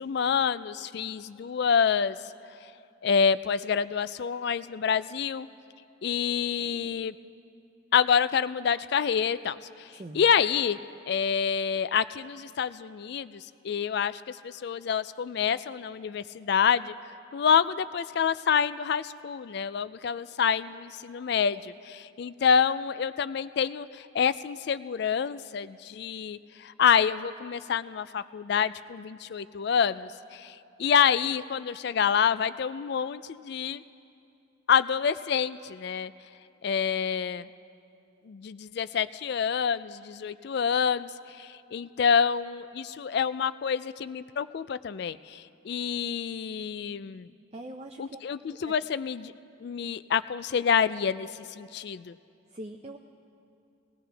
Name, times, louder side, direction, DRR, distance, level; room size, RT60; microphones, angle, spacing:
voice 1, 0.0-2.2 3.0-5.5 6.0-7.1 7.9-10.8 11.1-16.9 17.3-33.8 34.7-36.1 36.6-37.5 38.3-47.3 48.0-49.3 49.6-52.2, left 7 dB, 55° left, 15 dB, 0.3 m, -27 dB
voice 2, 47.5-48.2 48.6-48.7 52.5-53.0, right 1 dB, 30° right, 4 dB, 0.5 m, -42 dB
20.0 x 18.5 x 3.4 m, 2.6 s
head